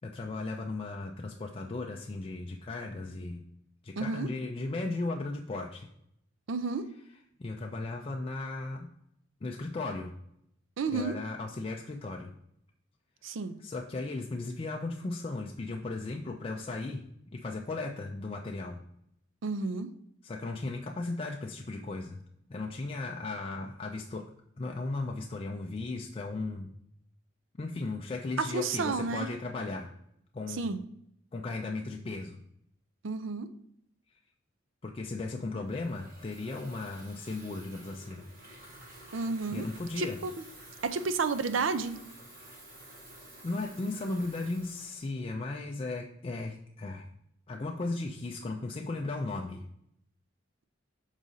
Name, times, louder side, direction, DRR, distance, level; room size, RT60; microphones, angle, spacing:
voice 1, 0.0-3.4 3.8-5.9 7.4-8.9 9.4-10.1 10.9-12.3 13.6-17.1 17.3-18.8 20.2-22.2 22.5-24.3 24.6-26.7 27.6-29.9 30.3-30.7 31.3-32.4 34.8-38.3 39.5-40.2 43.4-47.1 47.5-49.6, left 2 dB, 30° left, 1 dB, 0.4 m, -36 dB
voice 2, 4.0-4.3 6.5-6.9 10.8-11.1 13.2-13.6 19.4-19.9 28.5-29.3 30.5-30.8 33.0-33.5 39.1-39.7 40.0-40.3 40.8-41.9, right 4 dB, 70° right, 11 dB, 0.5 m, -31 dB
Water tap faucet / Fill (with liquid), 35.6-45.9, right 1 dB, 45° right, 2.2 m, -51 dB
6.2 x 4.0 x 3.9 m, 0.73 s
head